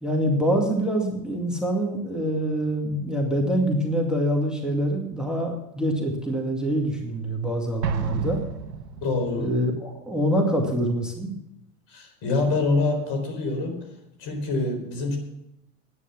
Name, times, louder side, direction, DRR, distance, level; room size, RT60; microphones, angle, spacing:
voice 1, 0.0-8.4 9.4-11.3, right 1 dB, ahead, 0 dB, 2.1 m, -25 dB
Explosion, 7.8-9.4, right 5 dB, 90° right, 1.6 m, -32 dB
voice 2, 9.0-9.5 11.9-13.9 14.2-15.2, left 3 dB, 55° left, 5 dB, 4.2 m, -25 dB
9.8 x 9.6 x 7.1 m, 0.83 s
hypercardioid pair, 95°, 49 cm